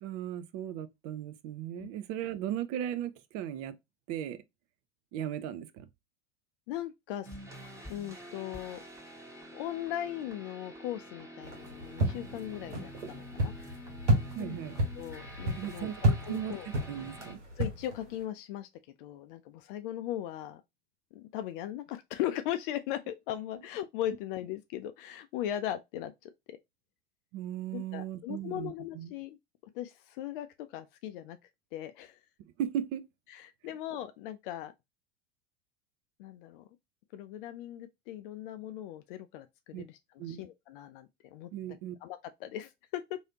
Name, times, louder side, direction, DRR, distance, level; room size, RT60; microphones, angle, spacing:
voice 1, 0.0-3.8 4.1-4.4 5.1-5.9 14.3-14.8 15.6-16.5 16.9-17.4 27.3-29.1 32.6-33.1 39.7-39.8 40.2-40.4 41.5-42.0, right 10 dB, 45° right, 0.5 m, -37 dB
voice 2, 6.7-7.3 7.9-8.8 9.5-13.8 14.4-14.6 15.0-16.7 17.6-18.7 19.0-20.6 21.1-26.6 27.7-29.4 29.7-31.4 31.7-32.2 33.3-34.7 36.2-36.6 37.1-41.5 42.0-43.2, left 12 dB, 50° left, 0.4 m, -38 dB
sound 1, 7.2-17.3, equal, 10° right, 1.4 m, -48 dB
sound 2, 11.4-18.2, right 1 dB, 85° right, 1.2 m, -32 dB
3.2 x 2.7 x 2.7 m
figure-of-eight pair, 80°, 35 cm